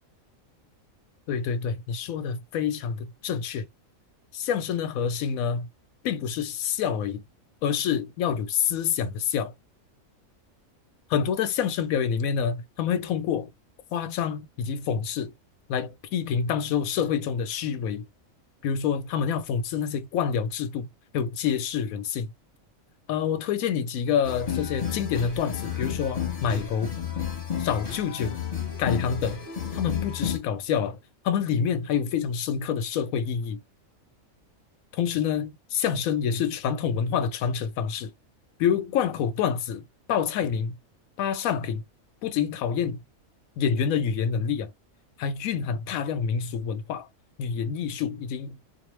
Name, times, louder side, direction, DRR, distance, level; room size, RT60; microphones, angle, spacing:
voice 1, 1.3-3.7 4.3-5.7 6.0-7.2 7.6-9.5 11.1-13.5 13.9-15.3 15.7-18.1 18.6-20.9 21.1-22.3 23.1-27.0 27.6-28.4 28.8-29.4 29.7-31.0 31.2-33.6 34.9-38.1 38.6-40.8 41.2-41.8 42.2-43.0 43.6-44.7 45.2-47.1 47.4-48.6, left 7 dB, 90° left, 1.0 m, -27 dB
sound 1, 24.2-30.4, left 8 dB, 30° left, 0.9 m, -32 dB
2.5 x 2.1 x 3.0 m
omnidirectional pair, 1.4 m